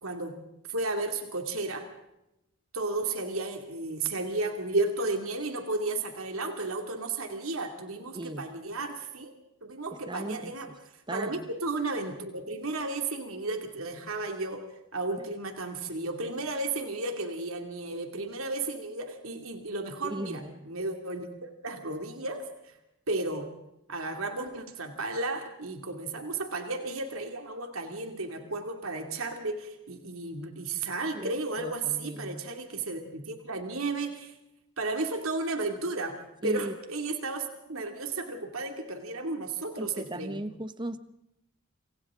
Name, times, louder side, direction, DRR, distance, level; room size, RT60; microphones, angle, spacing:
voice 1, 0.0-0.4 0.7-1.9 2.7-9.3 9.6-10.7 11.1-14.6 14.9-22.7 23.1-23.5 23.9-34.3 34.8-40.4, right 2 dB, 80° right, 2.6 m, -33 dB
voice 2, 8.1-8.4 9.9-10.5 11.1-11.5 20.0-20.6 31.1-32.4 36.4-36.7 39.8-41.0, right 1 dB, 20° right, 1.0 m, -37 dB
27.5 x 26.5 x 3.8 m
head